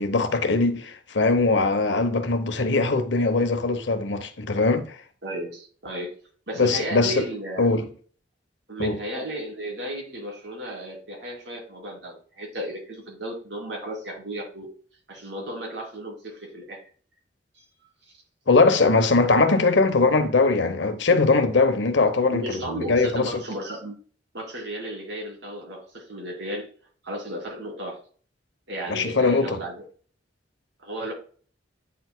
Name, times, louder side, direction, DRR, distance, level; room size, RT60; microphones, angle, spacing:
voice 1, 0.0-5.0 6.6-7.2 7.6-7.9 8.8-9.0 18.5-23.3 28.9-29.6, left 3 dB, 75° left, 0.9 m, -21 dB
voice 2, 5.2-6.1 6.5-7.7 8.7-14.7 15.1-16.8 22.3-23.9 24.3-26.7 27.0-28.0 28.7-29.8 30.8-31.1, right 1 dB, 70° right, 2.6 m, -34 dB
9.1 x 4.7 x 2.2 m
head